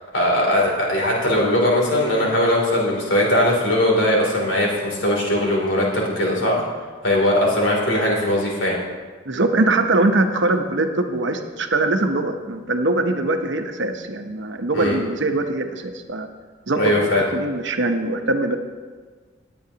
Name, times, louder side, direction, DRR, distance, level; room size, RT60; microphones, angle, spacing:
voice 1, 0.1-6.7 7.0-8.8 14.7-15.0 16.8-17.2, left 1 dB, 70° left, -3 dB, 2.9 m, -20 dB
voice 2, 9.3-16.3 16.7-18.6, right 2 dB, 65° right, 6 dB, 0.9 m, -22 dB
19.0 x 8.6 x 2.9 m, 1.5 s
head